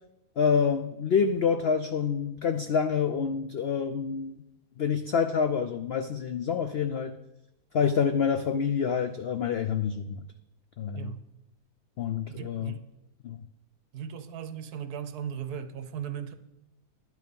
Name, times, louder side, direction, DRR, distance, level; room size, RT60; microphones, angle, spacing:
voice 1, 0.4-4.4 4.8-7.2 7.7-10.2 10.8-11.1 12.0-12.7 13.2-13.4, left 6 dB, 80° left, 9 dB, 0.5 m, -27 dB
voice 2, 12.3-12.8 13.9-16.3, right 8 dB, 75° right, 10 dB, 1.3 m, -37 dB
11.0 x 9.2 x 5.3 m, 0.91 s
omnidirectional pair, 1.7 m